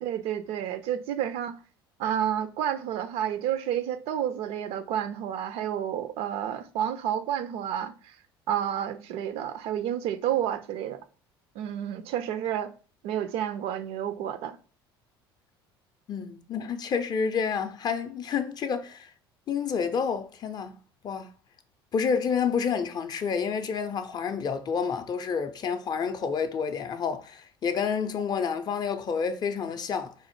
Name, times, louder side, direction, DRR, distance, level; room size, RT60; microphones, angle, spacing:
voice 1, 0.0-1.6 2.0-8.1 8.5-11.0 11.6-12.7 13.0-14.6, right 10 dB, 50° right, 0.4 m, -30 dB
voice 2, 16.1-19.1 19.5-20.8 21.0-21.3 21.9-30.1, left 6 dB, 35° left, 0.4 m, -29 dB
4.1 x 2.0 x 3.0 m
figure-of-eight pair, 65°, 13 cm